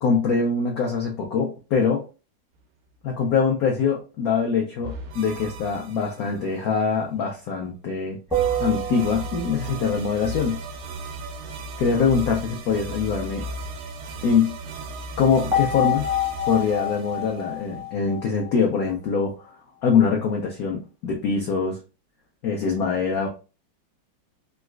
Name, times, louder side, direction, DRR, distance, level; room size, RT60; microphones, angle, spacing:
voice 1, 0.0-2.0 3.0-8.2 8.6-10.6 11.8-13.5 14.2-14.6 15.2-16.1 16.5-19.5 19.8-21.8 22.4-23.3, left 5 dB, 75° left, 0 dB, 0.8 m, -23 dB
sound 1, 4.8-6.7 8.3-18.1, right 2 dB, 85° right, 1.5 m, -36 dB
sound 2, 8.3-9.8 15.5-18.9, left 3 dB, 5° right, 0.4 m, -27 dB
3.9 x 2.4 x 2.3 m, 0.32 s
omnidirectional pair, 2.3 m